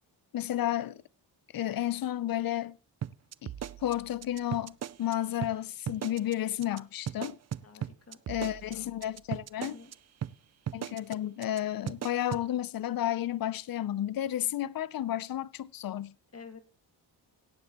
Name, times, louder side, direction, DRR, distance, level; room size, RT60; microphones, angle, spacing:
voice 1, 0.3-1.0 1.5-2.8 3.4-3.5 3.8-7.4 8.3-9.8 10.7-16.1, left 12 dB, 55° left, 0.7 m, -32 dB
sound 1, 3.0-5.1 5.4-5.5 5.9-6.3 6.6-6.8 7.1-9.9 10.2-10.3 10.7-11.1 11.4-11.6 11.9-12.4, right 10 dB, 40° right, 0.4 m, -37 dB
voice 2, 7.6-8.9 9.6-9.9 16.3-16.6, left 5 dB, 35° left, 2.0 m, -51 dB
17.0 x 8.5 x 3.0 m
cardioid pair, 85°, 42 cm